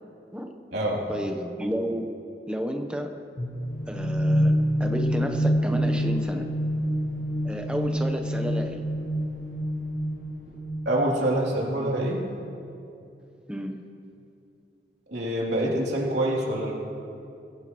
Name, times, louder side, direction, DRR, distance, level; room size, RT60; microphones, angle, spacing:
voice 1, 1.1-2.1 2.5-3.1 3.9-4.5 4.8-6.5 7.4-8.8 13.5-13.8, equal, 5° right, 4 dB, 0.9 m, -31 dB
sound 1, 3.4-11.1, equal, 50° left, 1.4 m, -27 dB
voice 2, 10.8-12.2 15.1-16.7, right 1 dB, 85° right, -4 dB, 3.0 m, -25 dB
21.5 x 16.0 x 3.1 m, 2.6 s
head